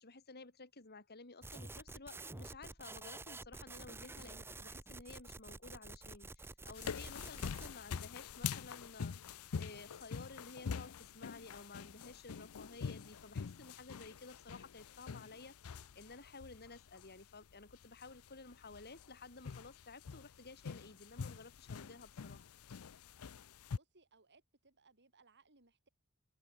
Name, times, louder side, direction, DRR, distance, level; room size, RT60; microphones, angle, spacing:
voice 1, 0.0-22.5, left 3 dB, 50° left, 3.2 m, -54 dB
sound 1, 1.4-7.7, right 2 dB, 10° right, 0.6 m, -50 dB
sound 2, 6.7-23.8, left 6 dB, 75° left, 0.5 m, -45 dB
voice 2, 23.7-25.9, right 3 dB, 55° right, 6.4 m, -68 dB
head